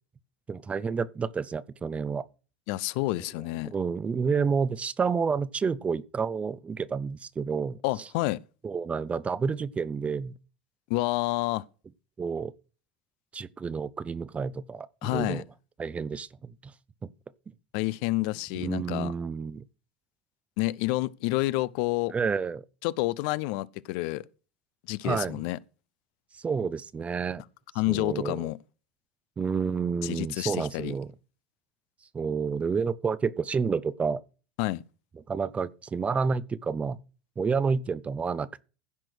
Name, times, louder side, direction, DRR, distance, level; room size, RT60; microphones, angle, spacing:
voice 1, 0.5-2.2 3.6-7.8 8.6-10.3 12.2-12.5 13.3-15.4 15.8-16.7 17.0-17.1 18.5-19.7 22.1-22.6 25.0-25.4 26.3-27.4 27.9-28.5 29.4-31.1 32.1-34.2 35.3-37.0 37.4-38.6, right 5 dB, 25° right, 0.8 m, -29 dB
voice 2, 2.7-3.7 7.8-8.4 10.9-11.6 15.0-15.4 17.7-19.1 20.6-22.1 22.8-24.3 24.9-25.6 27.8-28.6 30.0-30.9 34.6-34.8, left 19 dB, 60° left, 0.6 m, -29 dB
15.5 x 6.0 x 6.3 m
hypercardioid pair, 75°, 6 cm